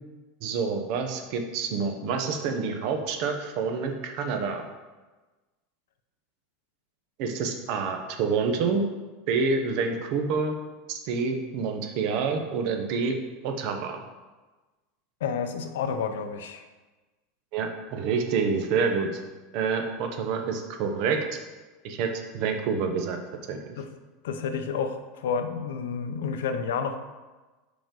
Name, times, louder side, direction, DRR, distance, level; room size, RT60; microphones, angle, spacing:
voice 1, 0.4-4.7 7.2-8.8 9.3-10.5 10.9-13.2 13.4-14.0 17.5-19.2 19.5-21.2 21.8-23.2 23.5-23.6, right 5 dB, 55° right, 5 dB, 0.9 m, -27 dB
voice 2, 15.2-16.6 23.8-23.9 24.2-27.0, left 6 dB, 90° left, 8 dB, 0.6 m, -30 dB
5.1 x 4.9 x 3.8 m, 1.2 s
supercardioid pair, 135°, 0 cm